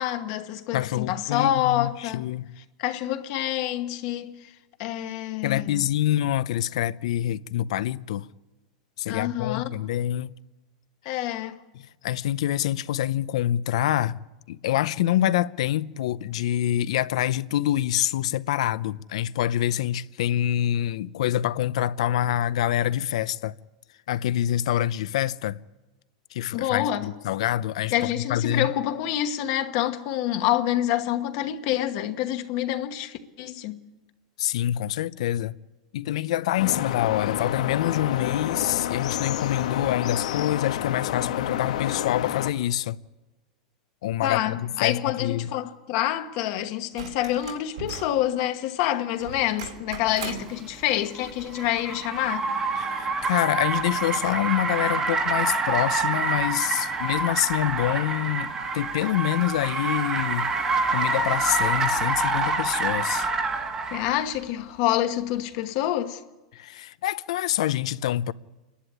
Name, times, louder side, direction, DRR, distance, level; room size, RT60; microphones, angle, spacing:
voice 1, 0.0-2.2 2.8-4.5 4.8-5.9 9.1-9.7 11.0-11.6 26.5-27.1 27.9-33.8 44.2-52.5 63.9-66.2, left 12 dB, 40° left, 1.1 m, -27 dB
voice 2, 0.7-2.5 5.4-8.3 9.0-10.3 11.7-14.2 14.5-23.5 24.1-25.6 26.3-28.7 34.4-35.5 35.9-43.0 44.0-45.5 52.8-60.5 60.9-63.3 66.5-68.3, left 12 dB, 65° left, 0.6 m, -26 dB
sound 1, 36.6-42.5, left 10 dB, 85° left, 1.4 m, -29 dB
sound 2, 46.9-48.2 49.2-50.6 52.2-52.3, right 5 dB, 75° right, 3.9 m, -38 dB
Car, 50.3-64.2, right 3 dB, 15° right, 1.3 m, -27 dB
28.5 x 11.5 x 9.8 m
supercardioid pair, 180°, 4 cm